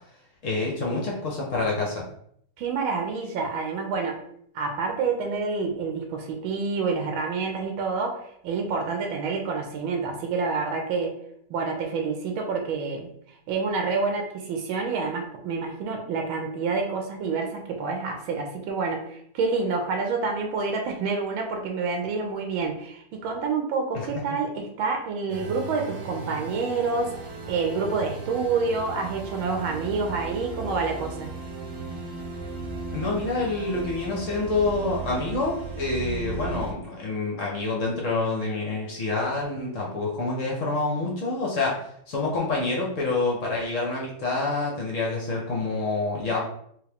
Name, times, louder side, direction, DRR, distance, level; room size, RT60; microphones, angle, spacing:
voice 1, 0.4-2.0 32.9-41.7 42.1-46.4, left 3 dB, 55° left, -2 dB, 0.9 m, -27 dB
voice 2, 2.6-4.2 4.5-11.1 11.5-13.1 13.5-27.1 27.5-31.3, right 4 dB, 85° right, 3 dB, 1.5 m, -28 dB
sound 1, 25.3-36.7, right 3 dB, 65° right, 1.2 m, -36 dB
3.6 x 3.1 x 3.4 m, 0.68 s
omnidirectional pair, 2.2 m